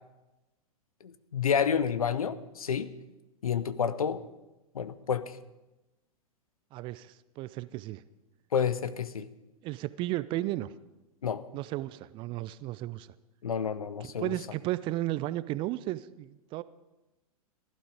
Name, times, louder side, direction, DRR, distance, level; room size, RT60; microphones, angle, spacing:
voice 1, 1.0-2.9 3.4-4.2 4.7-5.4 8.5-9.3 11.2-11.4 13.4-14.3, left 7 dB, 75° left, 15 dB, 0.8 m, -29 dB
voice 2, 6.7-8.0 9.6-10.7 11.5-13.1 14.0-16.6, right 16 dB, 25° right, 17 dB, 0.4 m, -34 dB
15.5 x 11.5 x 5.0 m, 1.0 s
figure-of-eight pair, 105°, 19 cm